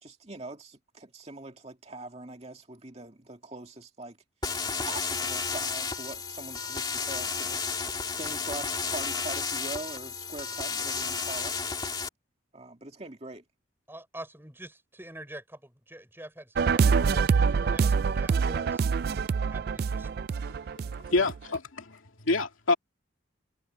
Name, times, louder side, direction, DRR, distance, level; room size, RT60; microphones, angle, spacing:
voice 1, 0.0-4.2 4.9-7.6 8.2-11.6 12.5-13.4, right 2 dB, 30° right, 2.3 m, -42 dB
sound 1, 4.4-12.1, left 5 dB, 20° left, 2.5 m, -32 dB
voice 2, 13.9-18.8 19.4-20.1 21.2-21.3, right 1 dB, 10° right, 5.2 m, -46 dB
sound 2, 16.6-21.6, right 5 dB, 50° right, 0.3 m, -25 dB
voice 3, 21.1-22.0 22.3-22.7, left 3 dB, 90° left, 2.6 m, -27 dB
head